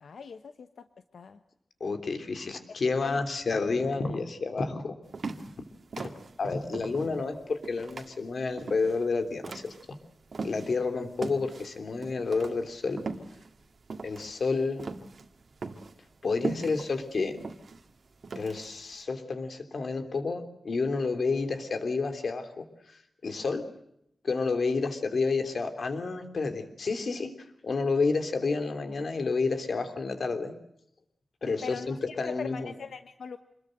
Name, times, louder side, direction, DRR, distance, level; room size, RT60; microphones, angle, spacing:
voice 1, 0.0-0.8 1.1-1.4 2.7-3.2 31.6-33.4, left 5 dB, 90° left, 9 dB, 1.1 m, -41 dB
voice 2, 1.8-5.0 6.0-6.1 6.4-9.7 10.4-13.0 14.0-14.8 16.2-17.4 18.3-23.6 24.2-27.3 27.6-30.5 31.4-32.7, left 4 dB, 55° left, 7 dB, 3.2 m, -30 dB
sound 1, 5.1-10.8 11.2-18.9, right 4 dB, 55° right, 2.0 m, -39 dB
27.0 x 21.5 x 7.9 m, 0.76 s
wide cardioid pair, 170°, 0 cm